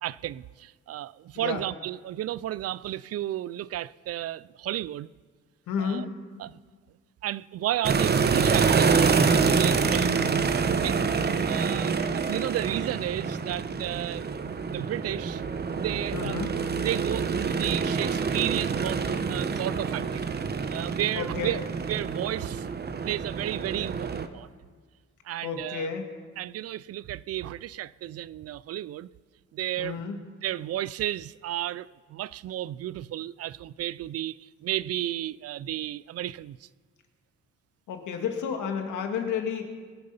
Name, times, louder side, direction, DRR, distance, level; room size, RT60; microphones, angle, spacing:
voice 1, 0.0-5.1 5.8-6.1 6.4-6.6 7.2-10.3 10.6-11.0 11.4-14.4 14.6-15.4 15.7-16.4 16.8-20.3 20.7-21.6 21.9-22.7 23.0-24.5 25.2-25.9 26.4-29.1 29.5-30.0 30.4-36.7, right 13 dB, 55° right, 0.4 m, -33 dB
voice 2, 5.7-6.1 16.1-16.6 21.1-21.6 25.4-26.1 29.8-30.2 37.9-39.6, left 6 dB, 80° left, 1.9 m, -31 dB
sound 1, 7.8-24.3, right 5 dB, 35° right, 0.9 m, -26 dB
21.0 x 7.8 x 5.6 m
cardioid pair, 90°, 30 cm